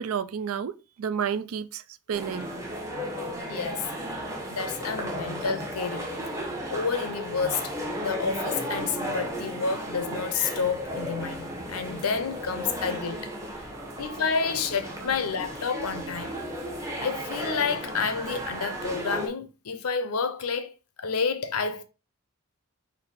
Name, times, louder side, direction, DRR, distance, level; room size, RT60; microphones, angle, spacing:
voice 1, 0.0-1.8 2.1-2.5 13.6-14.0, right 7 dB, 75° right, 0.4 m, -31 dB
sound 1, 2.1-19.3, equal, 15° right, 0.8 m, -34 dB
voice 2, 3.5-3.9 4.5-6.1 6.4-7.8 8.0-13.6 14.0-16.4 17.0-20.7 21.0-21.8, left 5 dB, 80° left, 0.6 m, -30 dB
4.2 x 2.6 x 4.0 m
head